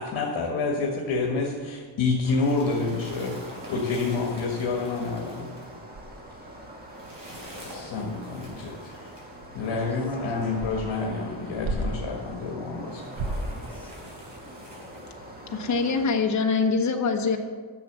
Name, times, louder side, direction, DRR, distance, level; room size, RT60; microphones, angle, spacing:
voice 1, 0.0-5.5 7.7-9.1 9.5-13.0, left 3 dB, 65° left, -1 dB, 1.8 m, -28 dB
sound 1, 1.3-2.6 3.2-3.3 3.5-3.7 4.0-4.1 4.5-5.0 5.3-5.4 5.9-12.2 12.9-13.6, right 2 dB, 70° right, 1.5 m, -37 dB
sound 2, 2.2-16.1, equal, 20° right, 1.7 m, -43 dB
sound 3, 2.3-9.7 10.6-10.7 11.0-11.1 11.8-11.9 12.3-12.4 12.9-15.1, equal, 40° right, 4.0 m, -47 dB
voice 2, 9.7-10.4 12.8-14.4, left 1 dB, 5° left, -5 dB, 2.4 m, -47 dB
voice 3, 15.5-17.4, left 4 dB, 35° left, 2 dB, 1.2 m, -24 dB
11.0 x 7.0 x 6.9 m, 1.5 s
wide cardioid pair, 165°, 48 cm